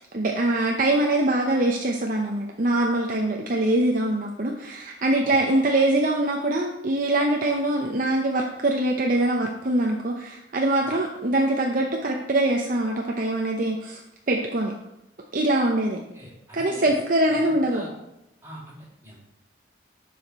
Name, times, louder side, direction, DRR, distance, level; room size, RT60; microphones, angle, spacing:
voice 1, 0.1-14.0 14.3-14.7 15.3-16.0 16.5-17.8, right 1 dB, 45° right, 1 dB, 0.7 m, -23 dB
voice 2, 15.9-16.9 17.3-17.9 18.4-19.2, equal, 15° right, -5 dB, 2.5 m, -44 dB
9.8 x 5.1 x 4.2 m, 0.87 s
head